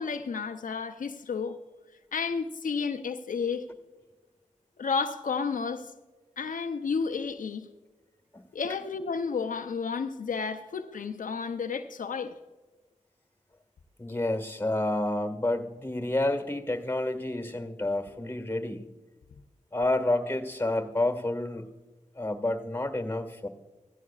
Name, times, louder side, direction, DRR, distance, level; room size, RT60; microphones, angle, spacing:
voice 1, 0.0-1.6 2.1-3.6 4.8-5.9 6.4-7.7 8.5-12.3, left 5 dB, 85° left, 0.6 m, -31 dB
voice 2, 14.0-18.9 19.7-21.7 22.1-23.5, left 1 dB, 15° left, 1.7 m, -29 dB
16.0 x 15.5 x 2.4 m
cardioid pair, 55°, 13 cm